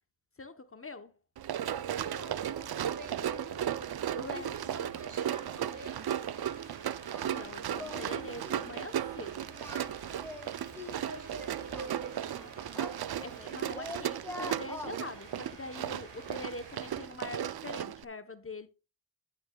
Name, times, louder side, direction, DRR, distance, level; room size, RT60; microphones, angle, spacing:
voice 1, 0.4-1.1 4.1-4.9 7.2-9.5 13.2-18.7, left 2 dB, 30° left, 0.9 m, -44 dB
Run, 1.4-18.0, right 10 dB, 60° right, 0.6 m, -36 dB
voice 2, 1.9-6.1 10.9-12.9, right 3 dB, 45° right, 1.7 m, -47 dB
sound 1, 2.0-14.0 14.3-17.2, right 3 dB, 85° right, 6.2 m, -52 dB
Singing, 7.1-7.5 7.8-8.2 8.4-8.7 9.5-11.1 11.7-13.5 13.7-15.0, left 1 dB, 5° left, 2.1 m, -44 dB
11.0 x 9.4 x 2.3 m
cardioid pair, 60°, 44 cm